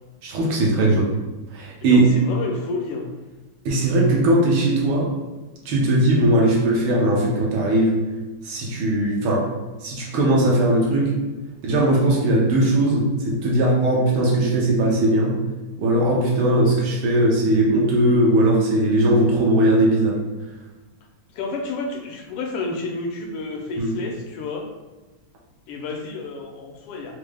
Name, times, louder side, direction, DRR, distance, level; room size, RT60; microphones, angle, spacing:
voice 1, 0.2-1.1 1.5-2.1 3.6-5.1 5.6-8.1 8.4-9.5 9.8-11.1 11.6-15.4 15.8-20.2 23.8-23.9, right 1 dB, 75° right, -2 dB, 1.5 m, -19 dB
voice 2, 1.8-3.1 21.3-24.7 25.7-27.1, left 3 dB, 85° left, 1 dB, 1.6 m, -30 dB
4.8 x 2.0 x 3.3 m, 1.2 s
omnidirectional pair, 2.4 m